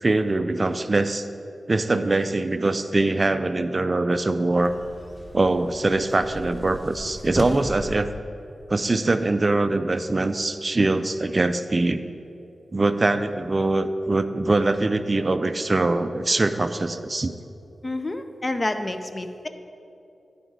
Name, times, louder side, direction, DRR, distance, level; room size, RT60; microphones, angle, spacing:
voice 1, 0.0-1.3 1.7-4.7 5.3-8.1 8.7-12.0 12.7-17.3, right 2 dB, 40° right, 10 dB, 0.3 m, -23 dB
sound 1, 4.6-8.0, equal, ahead, 1.2 m, -36 dB
voice 2, 17.8-19.5, left 2 dB, 35° left, 8 dB, 0.5 m, -28 dB
11.5 x 5.0 x 3.9 m, 2.7 s
cardioid pair, 60°, 0 cm